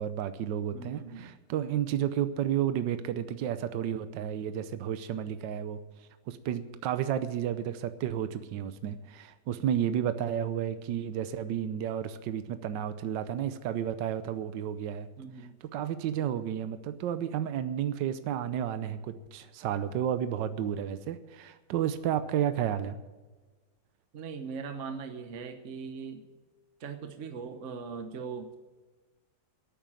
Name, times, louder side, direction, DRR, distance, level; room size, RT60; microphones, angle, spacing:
voice 1, 0.0-5.8 6.3-15.1 15.4-23.0, right 10 dB, 80° right, 11 dB, 1.4 m, -32 dB
voice 2, 0.7-1.3 15.2-15.6 24.1-26.2 26.8-28.6, right 5 dB, 45° right, 7 dB, 1.3 m, -40 dB
12.5 x 9.1 x 8.8 m, 1.3 s
omnidirectional pair, 1.9 m